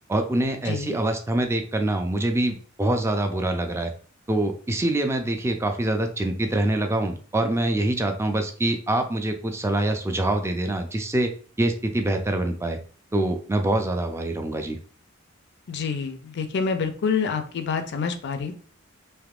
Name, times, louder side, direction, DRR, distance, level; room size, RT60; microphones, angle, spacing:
voice 1, 0.1-3.9 4.3-11.3 11.6-12.8 13.1-14.8, right 1 dB, 15° right, 5 dB, 0.4 m, -25 dB
voice 2, 0.7-1.0 15.7-18.5, left 5 dB, 55° left, 8 dB, 0.4 m, -27 dB
3.4 x 2.8 x 2.4 m, 0.43 s
head